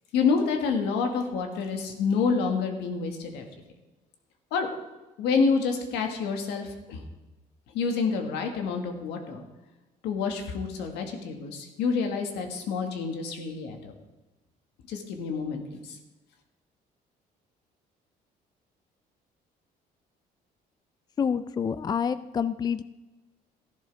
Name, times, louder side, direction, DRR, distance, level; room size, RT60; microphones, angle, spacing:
voice 1, 0.1-3.5 4.5-4.7 5.2-7.0 7.7-9.4 10.0-13.9 14.9-16.0, left 5 dB, 90° left, 4 dB, 1.8 m, -28 dB
voice 2, 21.2-22.8, left 7 dB, 25° left, 14 dB, 0.4 m, -27 dB
14.0 x 11.0 x 3.5 m, 1.1 s
cardioid pair, 110°, 17 cm